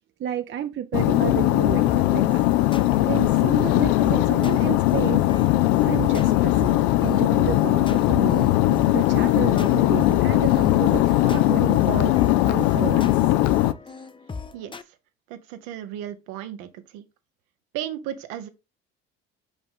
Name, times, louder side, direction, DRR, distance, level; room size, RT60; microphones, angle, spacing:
voice 1, 0.2-2.4 3.1-5.2 5.8-6.7 7.0-8.5 8.9-13.3, right 10 dB, 40° right, 0.6 m, -31 dB
sound 1, 0.9-13.7, left 15 dB, 75° left, 0.6 m, -20 dB
sound 2, 1.9-14.8, left 4 dB, 15° left, 0.7 m, -37 dB
voice 2, 15.3-17.0 17.7-18.5, right 11 dB, 75° right, 1.0 m, -35 dB
5.4 x 5.0 x 3.7 m
hypercardioid pair, 60°, 30 cm